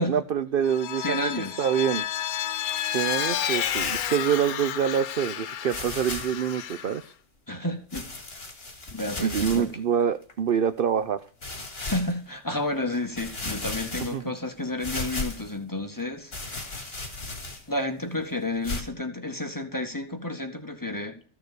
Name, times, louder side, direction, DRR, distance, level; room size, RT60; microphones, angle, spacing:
voice 1, 0.0-1.3 1.6-2.0 2.9-7.1 9.2-11.2 14.0-14.3, right 8 dB, 55° right, 12 dB, 0.7 m, -26 dB
Vehicle, 0.6-7.0, left 10 dB, 90° left, 1.3 m, -31 dB
voice 2, 1.0-1.7 7.5-8.1 8.9-9.7 11.8-16.3 16.8-17.1 17.7-21.2, left 1 dB, 15° left, 4 dB, 1.7 m, -31 dB
sound 1, 3.4-4.2 5.0-5.1 5.7-6.4 7.9-9.7 10.3-10.4 11.4-12.1 12.7-12.8 13.2-14.4 14.8-15.6 16.3-17.8 18.6-18.8, left 2 dB, 45° left, 2.8 m, -35 dB
14.5 x 6.6 x 6.7 m, 0.43 s
omnidirectional pair, 1.5 m